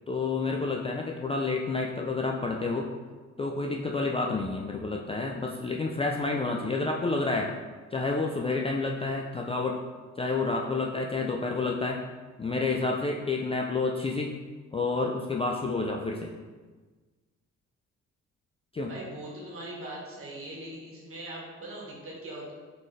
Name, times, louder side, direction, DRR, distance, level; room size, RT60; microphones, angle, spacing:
voice 1, 0.1-2.9 3.4-7.5 7.9-9.8 10.2-12.0 12.4-14.3 14.7-16.3 18.7-18.9, left 3 dB, 20° left, 0 dB, 0.3 m, -29 dB
voice 2, 18.9-22.5, right 1 dB, 45° right, -4 dB, 1.5 m, -41 dB
3.9 x 3.8 x 3.3 m, 1.3 s
cardioid pair, 90°, 30 cm